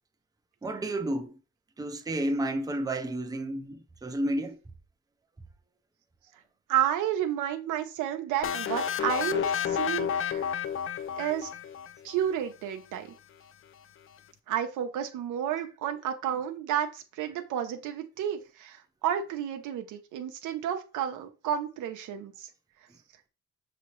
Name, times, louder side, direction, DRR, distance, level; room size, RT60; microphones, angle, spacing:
voice 1, 0.6-1.3 1.8-4.6, right 1 dB, 10° right, 0.6 m, -31 dB
voice 2, 6.7-10.4 11.2-11.5 12.0-13.1 14.5-22.5, right 10 dB, 90° right, 0.7 m, -31 dB
sound 1, 8.4-12.2, left 8 dB, 45° left, 0.4 m, -30 dB
6.0 x 2.8 x 3.0 m
cardioid pair, 90°, 30 cm